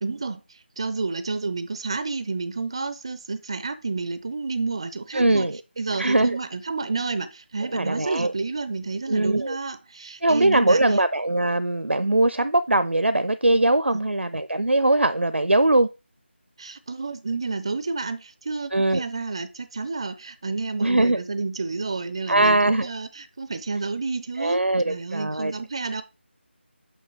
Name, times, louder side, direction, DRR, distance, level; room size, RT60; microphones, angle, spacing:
voice 1, 0.0-5.5 5.8-11.0 13.9-14.0 16.6-24.6 24.8-26.0, right 3 dB, 25° right, 0.4 m, -30 dB
voice 2, 5.1-5.6 6.0-6.4 7.7-8.3 9.1-9.6 10.2-15.9 18.7-19.0 20.8-21.2 22.3-22.9 24.4-25.5, right 2 dB, 85° right, 0.5 m, -21 dB
6.6 x 5.8 x 3.3 m
figure-of-eight pair, 165°, 6 cm